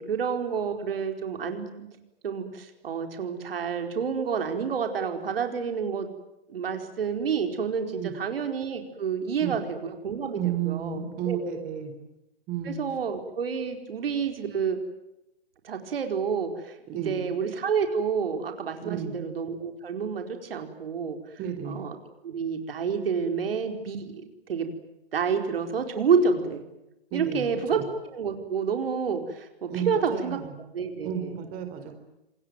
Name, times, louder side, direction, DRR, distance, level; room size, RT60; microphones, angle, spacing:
voice 1, 0.0-1.9 2.2-6.1 6.5-11.8 12.6-14.8 15.6-21.2 21.6-22.0 22.2-24.7 25.1-26.6 27.1-31.4, right 6 dB, 70° right, 5 dB, 4.7 m, -29 dB
voice 2, 10.3-11.9 12.5-12.8 16.9-17.2 18.8-19.1 21.4-21.8 27.1-27.5 27.7-27.8 29.7-30.5 31.0-32.0, right 9 dB, 25° right, 7 dB, 4.3 m, -32 dB
27.5 x 21.0 x 9.3 m, 0.90 s
hypercardioid pair, 135°, 30 cm